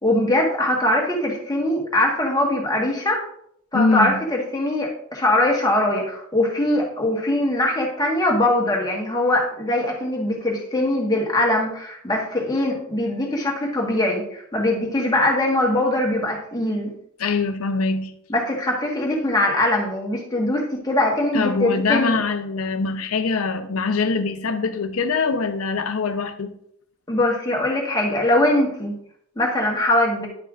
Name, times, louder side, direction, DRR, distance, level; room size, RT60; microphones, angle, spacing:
voice 1, 0.0-3.2 3.7-16.9 18.3-22.2 27.1-29.0 29.4-30.3, left 1 dB, 20° left, -1 dB, 1.4 m, -22 dB
voice 2, 3.7-4.2 17.2-18.1 21.3-26.5, left 4 dB, 90° left, 9 dB, 0.7 m, -23 dB
10.0 x 5.5 x 2.5 m, 0.68 s
head